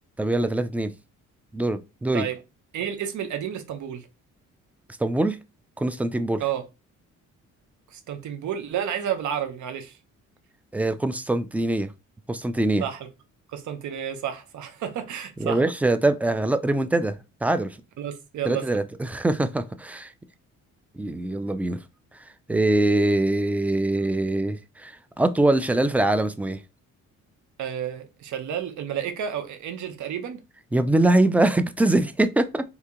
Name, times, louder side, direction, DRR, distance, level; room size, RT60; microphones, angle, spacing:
voice 1, 0.2-0.9 1.5-2.3 5.0-5.4 5.8-6.4 10.7-11.9 12.3-12.8 15.4-17.8 18.5-20.1 21.0-21.8 22.5-26.6 30.7-32.6, right 2 dB, 5° right, 0.3 m, -23 dB
voice 2, 2.7-4.1 6.4-6.6 7.9-10.0 12.8-13.1 13.5-15.6 18.0-18.8 27.6-30.4, right 9 dB, 75° right, 0.8 m, -31 dB
2.8 x 2.8 x 3.6 m
cardioid pair, 90°, 30 cm